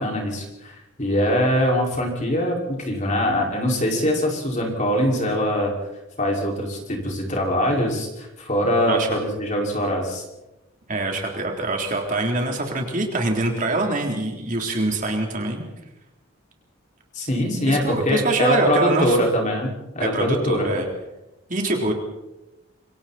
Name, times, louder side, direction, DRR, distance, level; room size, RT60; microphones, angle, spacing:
voice 1, 0.0-5.7 6.2-10.2 17.1-20.7, equal, 35° left, -1 dB, 5.5 m, -23 dB
voice 2, 10.9-15.6 17.7-19.2 20.0-20.9 21.5-21.9, right 2 dB, 40° right, 1 dB, 3.6 m, -24 dB
27.0 x 24.5 x 4.4 m, 0.97 s
head